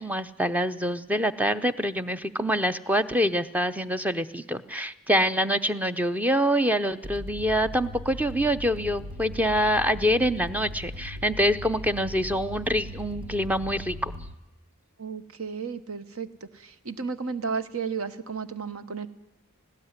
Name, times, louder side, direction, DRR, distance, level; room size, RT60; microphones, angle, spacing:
voice 1, 0.0-14.3, equal, 5° right, 11 dB, 0.6 m, -25 dB
sound 1, 7.0-14.3, left 1 dB, 90° right, 1.2 m, -39 dB
voice 2, 15.0-19.1, right 5 dB, 65° right, 12 dB, 1.1 m, -33 dB
18.5 x 16.5 x 9.7 m, 1.0 s
head